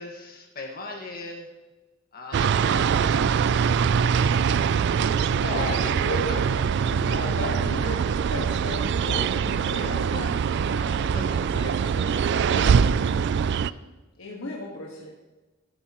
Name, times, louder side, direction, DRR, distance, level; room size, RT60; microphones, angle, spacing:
voice 1, 0.0-1.5 2.1-3.7 4.0-6.6 9.8-10.2 10.9-11.6 13.3-13.9, left 2 dB, 50° left, 0 dB, 1.8 m, -41 dB
sound 1, 2.3-13.7, right 6 dB, 60° right, 0.3 m, -23 dB
voice 2, 5.3-6.5 6.8-12.9 14.2-15.1, left 2 dB, 85° left, -3 dB, 1.7 m, -35 dB
17.0 x 9.2 x 3.1 m, 1.2 s
head